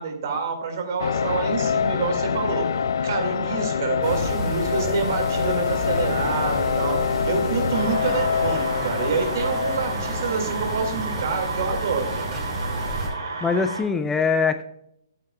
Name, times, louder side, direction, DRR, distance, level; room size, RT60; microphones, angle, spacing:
voice 1, 0.0-2.7 3.0-12.3, right 5 dB, 55° right, 5 dB, 2.2 m, -27 dB
sound 1, 1.0-11.0, left 7 dB, 65° left, 0.5 m, -26 dB
sound 2, 4.0-13.1, right 1 dB, 25° right, 2.5 m, -31 dB
sound 3, 7.7-13.8, right 3 dB, 75° right, 3.2 m, -32 dB
voice 2, 13.4-14.6, left 5 dB, 10° left, 8 dB, 0.5 m, -22 dB
12.5 x 8.9 x 2.3 m, 0.73 s
figure-of-eight pair, 120°, 2 cm